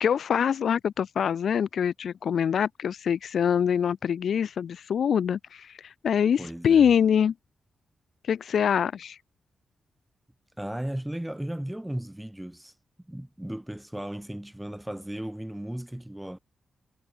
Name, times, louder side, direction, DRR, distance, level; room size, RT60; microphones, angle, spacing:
voice 1, 0.0-7.3 8.3-9.2, left 8 dB, 70° left, 0.3 m, -24 dB
voice 2, 6.4-6.9 10.6-12.7 13.1-16.4, right 1 dB, 5° right, 1.1 m, -35 dB
wide cardioid pair, 145°, 0 cm